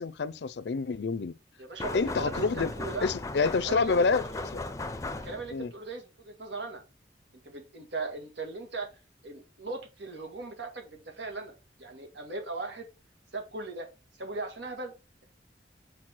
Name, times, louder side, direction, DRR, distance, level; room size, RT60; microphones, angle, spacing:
voice 1, 0.0-1.3 1.9-2.7 3.0-4.6 5.5-5.7, left 4 dB, 75° left, 0.5 m, -28 dB
voice 2, 1.6-3.1 3.6-4.4 5.2-6.8 7.4-8.9 9.2-12.9 13.3-13.9 14.2-14.9, right 3 dB, 85° right, 1.9 m, -38 dB
sound 1, 1.8-5.7, left 2 dB, 20° left, 0.5 m, -37 dB
6.1 x 4.6 x 4.4 m
head